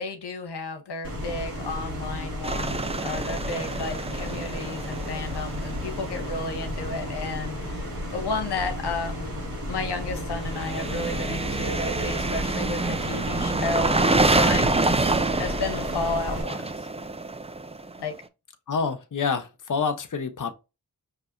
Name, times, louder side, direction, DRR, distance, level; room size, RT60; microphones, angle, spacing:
voice 1, 0.0-9.3 9.7-14.7 15.1-16.9 18.0-18.1, left 3 dB, 85° left, 0.7 m, -32 dB
sound 1, 1.0-16.4, equal, 55° right, 1.6 m, -33 dB
sound 2, 2.4-6.3 10.4-18.1, right 3 dB, 15° right, 0.4 m, -27 dB
voice 2, 18.7-20.5, left 5 dB, 50° left, 0.8 m, -27 dB
5.4 x 2.8 x 2.5 m
cardioid pair, 40°, 39 cm